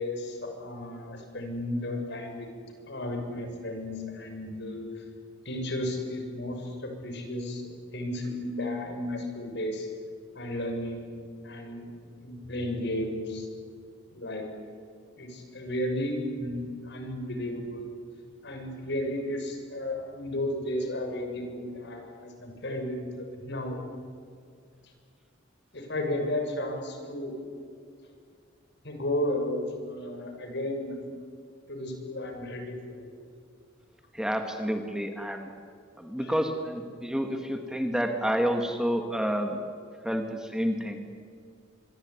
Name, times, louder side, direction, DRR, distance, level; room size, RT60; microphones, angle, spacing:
voice 1, 0.0-2.5 2.9-5.0 5.4-7.6 7.9-9.9 10.3-11.9 12.2-13.5 14.1-14.4 15.1-17.9 18.4-23.8 25.7-27.3 28.8-31.0 31.7-33.1 36.0-36.5, left 1 dB, 60° left, 4 dB, 6.7 m, -33 dB
voice 2, 34.1-35.5 36.0-39.6 40.0-41.0, equal, 5° right, 5 dB, 1.9 m, -29 dB
26.0 x 23.0 x 9.7 m, 2.2 s
head